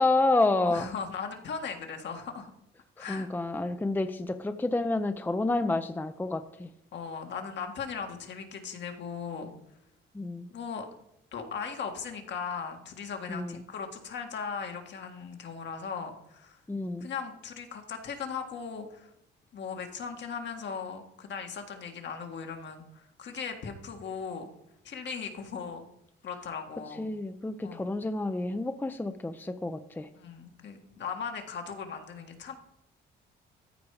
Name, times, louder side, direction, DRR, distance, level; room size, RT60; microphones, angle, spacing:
voice 1, 0.0-0.9 3.0-6.7 10.1-10.5 13.3-13.6 16.7-17.1 27.0-30.1, left 2 dB, 10° left, 0.6 m, -29 dB
voice 2, 0.6-2.5 3.0-3.3 6.9-9.5 10.5-10.9 11.3-16.6 17.0-19.1 19.5-24.5 24.8-25.9 26.2-27.1 27.6-27.9 30.1-32.5, left 6 dB, 65° left, 1.8 m, -38 dB
14.0 x 4.7 x 4.8 m
cardioid pair, 90°, 20 cm